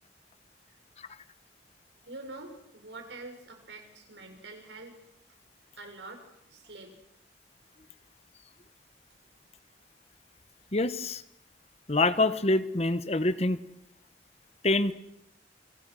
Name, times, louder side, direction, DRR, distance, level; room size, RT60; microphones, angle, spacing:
voice 1, 2.1-4.9 5.8-6.9, right 2 dB, 80° right, 4 dB, 6.7 m, -45 dB
voice 2, 10.7-11.2 11.9-13.6 14.6-14.9, left 2 dB, 35° left, 13 dB, 1.2 m, -25 dB
29.5 x 25.0 x 6.4 m, 0.81 s
head